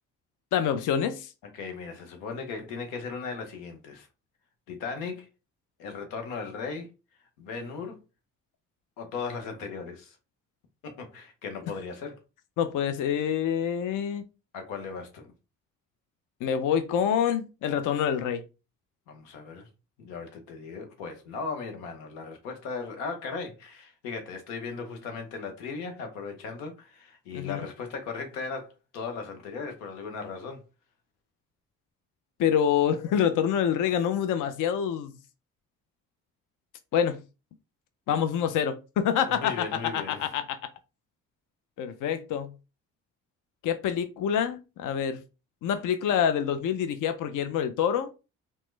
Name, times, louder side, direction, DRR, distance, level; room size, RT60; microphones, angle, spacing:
voice 1, 0.5-1.3 12.6-14.2 16.4-18.4 27.3-27.6 32.4-35.1 36.9-37.2 38.1-40.6 41.8-42.5 43.6-45.2 45.6-48.1, left 8 dB, 55° left, 0.5 m, -26 dB
voice 2, 1.5-4.1 4.7-5.3 5.8-6.9 7.4-8.0 9.0-10.2 10.8-12.2 14.5-15.3 19.1-19.7 20.0-30.6 39.2-40.3, left 4 dB, 90° left, 0.8 m, -37 dB
3.0 x 2.1 x 3.1 m
hypercardioid pair, 50°, 37 cm